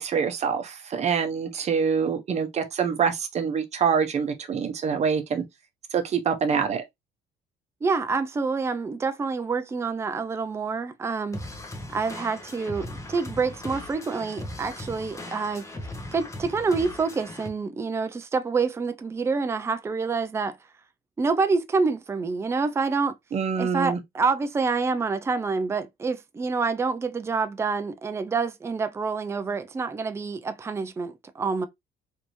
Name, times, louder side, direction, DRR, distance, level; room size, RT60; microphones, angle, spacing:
voice 1, 0.0-5.4 5.9-6.8 23.3-24.0, right 6 dB, 40° right, 0.8 m, -25 dB
voice 2, 7.8-11.4 11.9-15.6 16.1-20.6 21.2-23.1 23.6-31.7, right 4 dB, 15° right, 0.4 m, -27 dB
sound 1, 11.3-17.5, left 1 dB, 15° left, 0.8 m, -38 dB
3.3 x 2.5 x 3.0 m
cardioid pair, 110°, 17 cm